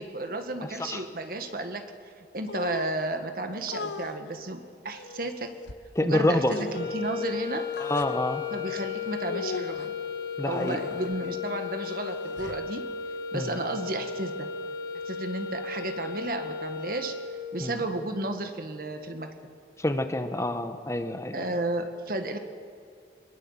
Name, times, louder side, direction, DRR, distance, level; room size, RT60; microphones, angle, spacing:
voice 1, 0.0-1.9 2.2-5.5 6.0-7.7 8.5-10.0 10.5-12.9 13.3-14.5 15.1-17.1 17.5-19.3 21.3-22.4, right 2 dB, 55° right, 7 dB, 1.7 m, -33 dB
sound 1, 2.5-3.0 3.7-4.2 4.9-5.8 6.5-6.9 7.7-8.1 9.2-9.9 10.5-11.2 11.8-12.6, left 3 dB, 90° left, 0.9 m, -38 dB
voice 2, 6.0-6.5 7.8-8.4 10.4-10.8 13.3-13.6 17.6-17.8 19.8-21.5, left 1 dB, 15° left, 7 dB, 1.0 m, -27 dB
sound 2, 6.7-17.6, left 5 dB, 55° left, 2.8 m, -35 dB
22.5 x 21.5 x 7.4 m, 2.3 s
head